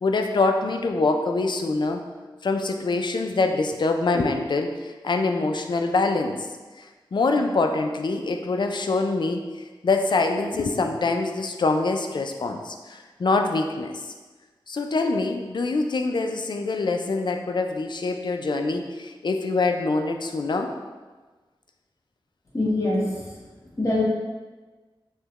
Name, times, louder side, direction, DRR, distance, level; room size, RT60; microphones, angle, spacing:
voice 1, 0.0-2.0 2.4-6.4 7.1-9.5 9.8-14.1 14.7-20.7, left 3 dB, 55° left, 4 dB, 0.4 m, -24 dB
voice 2, 22.5-23.4 23.8-24.0, left 2 dB, 35° left, -6 dB, 1.2 m, -24 dB
5.5 x 2.2 x 3.0 m, 1.3 s
wide cardioid pair, 80°, 9 cm